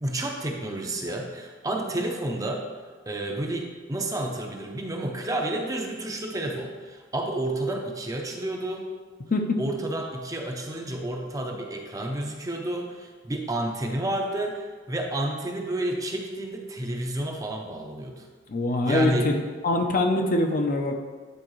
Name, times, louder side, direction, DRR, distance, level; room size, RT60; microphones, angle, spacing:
voice 1, 0.0-2.7 3.1-8.9 9.6-18.2 18.9-19.3, right 1 dB, 15° right, 2 dB, 0.6 m, -30 dB
voice 2, 18.5-19.4 19.6-21.0, left 2 dB, 45° left, 4 dB, 0.6 m, -23 dB
9.7 x 4.4 x 3.1 m, 1.5 s
head